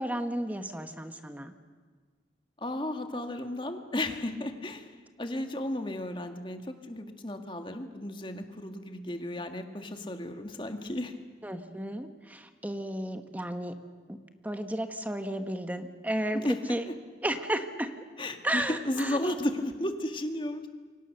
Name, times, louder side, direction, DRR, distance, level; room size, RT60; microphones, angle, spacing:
voice 1, 0.0-1.5 11.4-13.8 14.1-16.9 17.2-17.9 18.4-19.3, right 1 dB, 10° right, 7 dB, 1.2 m, -33 dB
voice 2, 2.6-4.9 5.2-11.1 16.3-16.5 16.9-17.0 18.2-20.7, left 1 dB, 30° left, 6 dB, 1.9 m, -34 dB
27.5 x 24.5 x 6.7 m, 1.5 s
head